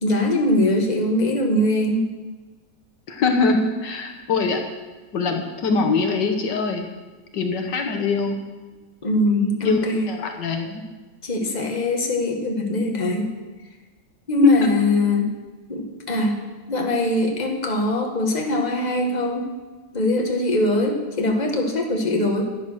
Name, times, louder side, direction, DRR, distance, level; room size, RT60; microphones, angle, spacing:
voice 1, 0.0-2.0 9.0-10.1 11.2-13.3 14.3-15.3 15.7-16.4 16.7-19.5 19.9-22.5, left 1 dB, 25° left, 1 dB, 1.7 m, -22 dB
voice 2, 3.1-4.6 5.1-6.9 7.3-8.4 9.6-10.8 14.4-14.7, left 4 dB, 75° left, 4 dB, 1.8 m, -22 dB
11.5 x 9.9 x 6.3 m, 1.3 s
omnidirectional pair, 1.9 m